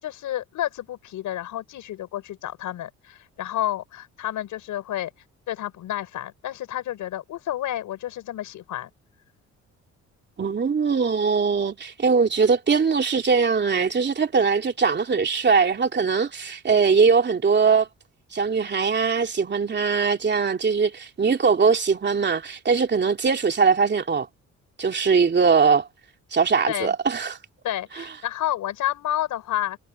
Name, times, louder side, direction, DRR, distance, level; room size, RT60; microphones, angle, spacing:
voice 1, 0.0-5.1 5.5-8.9 26.7-26.9 27.6-29.8, left 13 dB, 80° left, 5.5 m, -30 dB
voice 2, 10.4-17.9 18.3-24.3 24.8-25.9 26.3-27.4, right 5 dB, 35° right, 3.0 m, -21 dB
cardioid pair, 90°, 30 cm